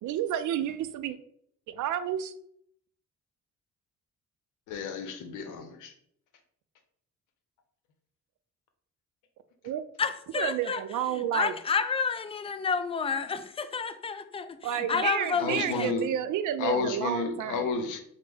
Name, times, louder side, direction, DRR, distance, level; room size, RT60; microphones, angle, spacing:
voice 1, 0.0-1.2 1.7-2.3 9.6-9.8 10.3-11.5 14.6-17.7, right 10 dB, 75° right, 11 dB, 0.5 m, -30 dB
voice 2, 4.7-5.9 15.4-16.1 16.6-18.0, left 5 dB, 90° left, 7 dB, 0.7 m, -31 dB
voice 3, 10.0-10.8 11.1-15.9, left 5 dB, 20° left, 10 dB, 0.4 m, -30 dB
5.1 x 2.1 x 3.4 m, 0.68 s
cardioid pair, 90°, 30 cm